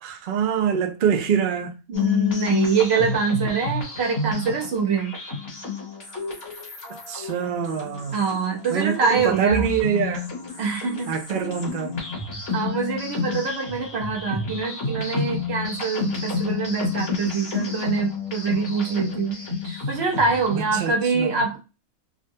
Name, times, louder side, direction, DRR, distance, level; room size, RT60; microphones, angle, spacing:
voice 1, 0.0-1.7 7.1-8.2 8.7-10.2 11.1-11.9 20.8-21.4, right 7 dB, 85° right, 0.4 m, -24 dB
sound 1, 1.9-20.8, left 4 dB, 45° left, 1.2 m, -30 dB
voice 2, 1.9-5.2 8.1-9.7 10.6-11.2 12.5-21.6, right 5 dB, 55° right, 1.0 m, -25 dB
3.6 x 2.2 x 2.6 m
omnidirectional pair, 1.5 m